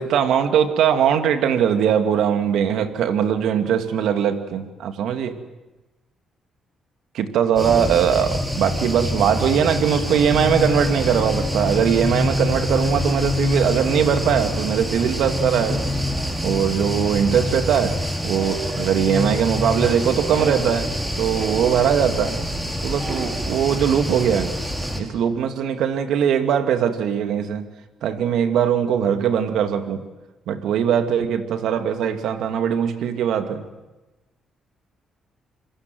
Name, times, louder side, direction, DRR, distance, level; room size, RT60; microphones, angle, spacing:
voice 1, 0.0-5.4 7.1-15.9 16.4-18.0 18.2-22.4 22.8-24.5 25.0-27.7 28.0-30.1 30.5-33.7, right 8 dB, 80° right, 8 dB, 2.5 m, -21 dB
sound 1, 7.6-25.0, left 1 dB, 15° right, 5.0 m, -25 dB
26.5 x 24.0 x 7.9 m, 1.1 s
cardioid pair, 90°, 0 cm